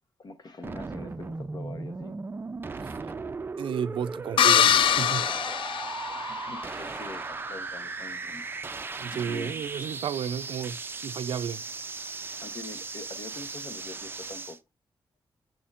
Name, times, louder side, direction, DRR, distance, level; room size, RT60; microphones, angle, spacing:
voice 1, 0.2-2.2 6.1-8.4 9.1-9.6 12.1-14.6, left 3 dB, 50° left, 0.9 m, -44 dB
sound 1, 0.6-14.6, right 4 dB, 25° right, 0.4 m, -37 dB
voice 2, 3.6-5.2 9.0-10.8 11.0-11.6, right 8 dB, 85° right, 0.4 m, -32 dB
sound 2, 4.4-6.6, left 9 dB, 90° left, 0.4 m, -23 dB
9.2 x 4.3 x 2.4 m
wide cardioid pair, 125°, 8 cm